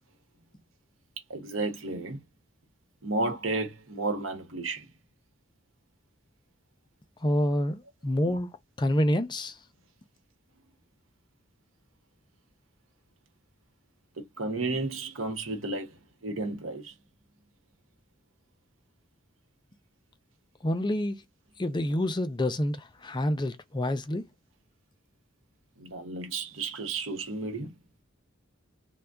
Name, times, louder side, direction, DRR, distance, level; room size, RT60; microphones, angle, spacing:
voice 1, 1.3-2.2 3.0-4.9 8.2-8.4 14.2-16.9 25.8-27.7, right 2 dB, 80° right, 1.1 m, -33 dB
voice 2, 7.2-8.5 8.8-9.6 20.6-21.2 21.6-24.3, left 1 dB, 20° left, 0.5 m, -27 dB
2.7 x 2.2 x 3.4 m
head